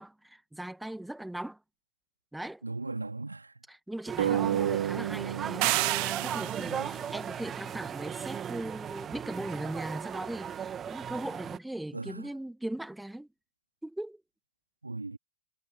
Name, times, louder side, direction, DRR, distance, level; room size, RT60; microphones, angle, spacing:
voice 1, 0.0-1.6 2.3-2.6 3.7-13.3 13.8-14.2, right 1 dB, 5° right, 1.9 m, -39 dB
voice 2, 2.6-3.6 6.7-6.9 11.9-12.3 14.8-15.2, right 3 dB, 80° right, 3.0 m, -38 dB
sound 1, 4.1-11.6, right 8 dB, 25° right, 1.9 m, -37 dB
sound 2, 4.2-7.4, right 10 dB, 60° right, 2.4 m, -32 dB
sound 3, 5.6-6.9, right 40 dB or more, 45° right, 0.4 m, -29 dB
figure-of-eight pair, 90°, 0 cm